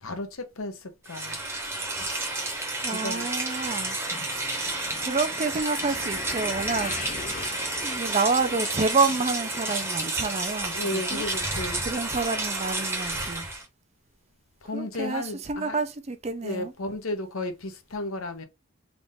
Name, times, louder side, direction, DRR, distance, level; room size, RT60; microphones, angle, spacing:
voice 1, 0.0-1.4 1.8-2.0 2.9-3.3 10.6-11.8 14.6-15.8 16.4-18.4, left 2 dB, 75° left, 0.8 m, -34 dB
Rain, 1.0-13.6, right 2 dB, 10° right, 0.9 m, -31 dB
voice 2, 2.8-4.0 5.0-6.9 7.7-11.2 11.8-13.5 14.7-15.2 15.5-16.7, right 4 dB, 30° right, 0.5 m, -28 dB
sound 1, 3.6-10.0 10.3-10.8 11.3-11.4 11.7-11.8, left 5 dB, 35° left, 0.4 m, -41 dB
3.6 x 2.5 x 3.7 m
head